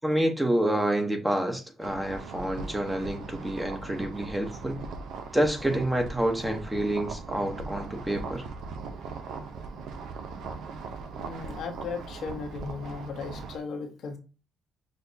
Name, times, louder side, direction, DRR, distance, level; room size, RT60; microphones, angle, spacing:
voice 1, 0.0-4.8 5.3-8.4, right 1 dB, 5° right, 0.9 m, -28 dB
sound 1, 1.8-13.6, right 4 dB, 80° right, 0.6 m, -39 dB
voice 2, 11.2-14.2, left 5 dB, 70° left, 0.9 m, -36 dB
6.4 x 2.3 x 2.7 m
cardioid pair, 90°, 0 cm